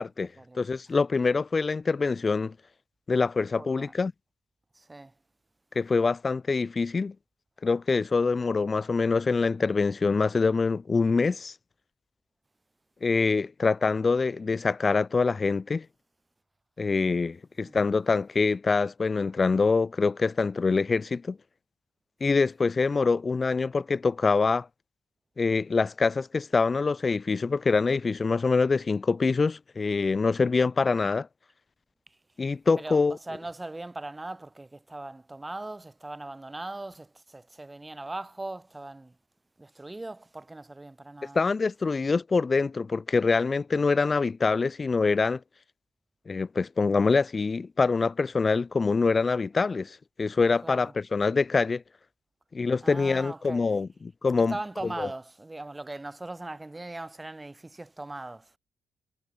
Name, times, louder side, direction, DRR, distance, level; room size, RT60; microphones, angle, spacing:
voice 1, 0.0-2.5 3.1-4.1 5.8-7.1 7.6-11.5 13.0-15.9 16.8-21.4 22.2-24.7 25.4-31.3 32.4-33.2 41.3-45.4 46.3-51.8 52.5-54.5 55.0-55.1, left 4 dB, 35° left, 0.5 m, -25 dB
voice 2, 3.5-3.9 4.7-5.1 17.6-17.8 32.1-32.2 32.8-39.2 39.6-41.4 50.6-50.9 52.8-53.6 54.5-58.6, right 2 dB, 20° right, 0.6 m, -39 dB
supercardioid pair, 55°, 0 cm